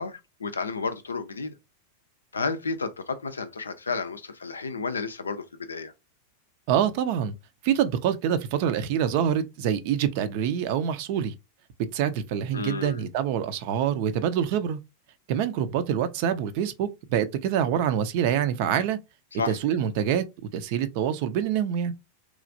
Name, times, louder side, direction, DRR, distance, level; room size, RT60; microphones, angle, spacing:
voice 1, 0.0-1.5 2.3-5.9 12.5-13.0 19.3-19.6, left 4 dB, 75° left, 0.4 m, -31 dB
voice 2, 6.7-7.3 7.6-11.3 11.9-14.8 15.3-19.0 19.5-20.2 20.5-21.9, right 9 dB, 45° right, 0.5 m, -26 dB
3.0 x 2.4 x 2.6 m
figure-of-eight pair, 90°, 0 cm